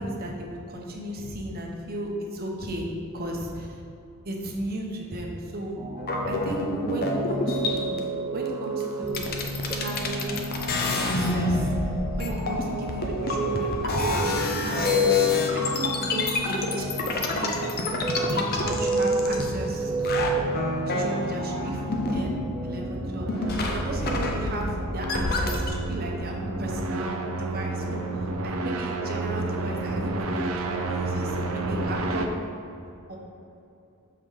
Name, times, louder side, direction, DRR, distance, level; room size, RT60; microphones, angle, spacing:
voice 1, 0.0-3.8 4.2-5.8 6.3-8.0 8.3-9.3 9.7-10.3 11.0-11.7 12.1-15.2 15.5-17.6 18.1-20.3 20.9-23.3 23.7-28.0 28.4-32.3 33.1-33.2, right 1 dB, 45° right, 0 dB, 0.9 m, -34 dB
sound 1, 5.8-24.3, right 3 dB, 20° right, 0.4 m, -31 dB
sound 2, 6.0-8.0 8.8-8.9 9.1-19.8 20.0-22.7 22.9-25.7, left 3 dB, 45° left, 0.6 m, -28 dB
sound 3, 17.9-32.3, right 2 dB, 70° right, 0.6 m, -32 dB
6.6 x 4.8 x 3.8 m, 2.7 s
head